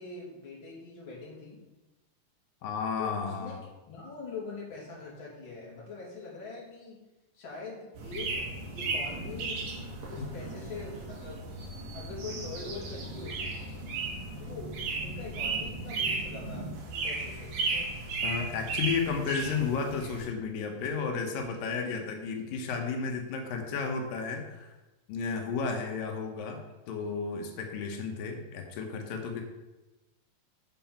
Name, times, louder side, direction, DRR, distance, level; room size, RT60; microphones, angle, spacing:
voice 1, 0.0-1.6 3.0-3.5 3.9-7.0 7.3-8.3 8.7-9.7 10.1-11.4 11.9-13.5 14.4-17.9, left 4 dB, 40° left, -5 dB, 3.1 m, -43 dB
voice 2, 2.6-3.6 10.2-10.3 18.2-24.7 25.1-26.6 26.9-29.4, left 5 dB, 90° left, 3 dB, 2.7 m, -33 dB
sound 1, 8.0-20.3, right 3 dB, 65° right, 2.8 m, -35 dB
sound 2, 10.9-11.1 11.6-11.7 12.2-12.5 12.8-13.5 13.7-14.5 14.8-14.9 15.1-15.9 16.2-16.3 16.5-16.8 17.1-17.4 17.9-18.2 18.5-18.8 19.0-19.8 20.1-20.2 20.8-21.0 21.3-21.6 21.8-22.0, left 3 dB, 10° right, 2.9 m, -55 dB
8.1 x 5.7 x 5.8 m, 1.1 s
omnidirectional pair, 3.9 m